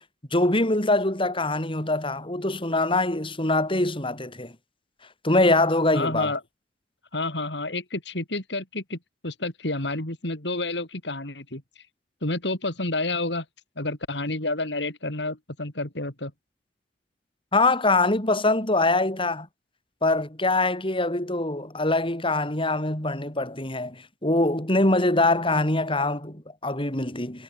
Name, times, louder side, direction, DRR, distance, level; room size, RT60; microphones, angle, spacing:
voice 1, 0.3-4.5 5.2-6.3 17.5-19.5 20.0-27.4, left 2 dB, 30° left, 7.0 m, -23 dB
voice 2, 5.9-6.4 7.1-9.0 9.2-11.8 12.2-13.4 13.8-16.3, left 2 dB, 70° left, 4.6 m, -29 dB
head